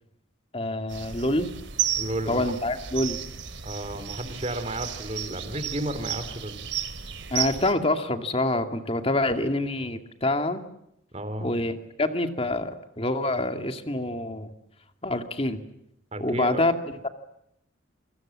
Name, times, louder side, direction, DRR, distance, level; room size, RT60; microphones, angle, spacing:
voice 1, 0.5-1.5 2.3-3.2 7.3-10.6 11.4-12.7 13.0-14.5 15.0-15.6 16.2-17.1, left 2 dB, 30° left, 7 dB, 2.3 m, -26 dB
sound 1, 0.9-7.7, right 9 dB, 70° right, 2.9 m, -33 dB
voice 2, 2.0-2.4 3.6-6.6 11.1-11.5 16.1-16.6, right 1 dB, 35° right, 11 dB, 3.5 m, -32 dB
28.0 x 25.0 x 7.5 m, 0.78 s
head